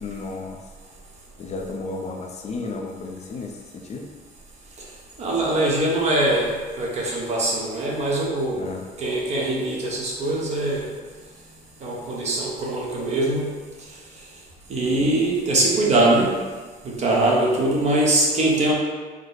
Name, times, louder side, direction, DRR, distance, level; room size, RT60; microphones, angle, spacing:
voice 1, 0.0-0.6 1.4-4.1 8.6-8.8, left 3 dB, 40° left, 1 dB, 0.5 m, -33 dB
voice 2, 5.2-8.6 9.0-10.8 11.8-13.4 14.7-16.3 16.8-18.7, right 2 dB, 40° right, -3 dB, 1.1 m, -22 dB
4.8 x 2.1 x 4.0 m, 1.4 s
cardioid pair, 110°, 17 cm